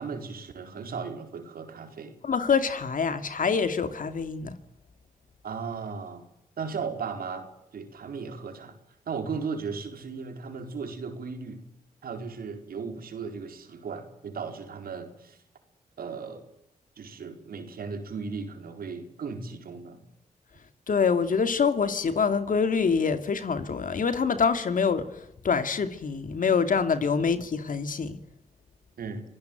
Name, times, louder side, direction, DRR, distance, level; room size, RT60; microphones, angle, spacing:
voice 1, 0.0-2.1 5.4-6.3 6.6-8.7 9.1-11.6 12.0-15.4 16.0-16.4 17.0-20.0 29.0-29.2, right 5 dB, 75° right, 4.5 m, -36 dB
voice 2, 2.2-4.6 20.9-25.1 25.4-28.2, left 5 dB, 60° left, 2.4 m, -25 dB
26.0 x 16.5 x 9.3 m
cardioid pair, 65°, 15 cm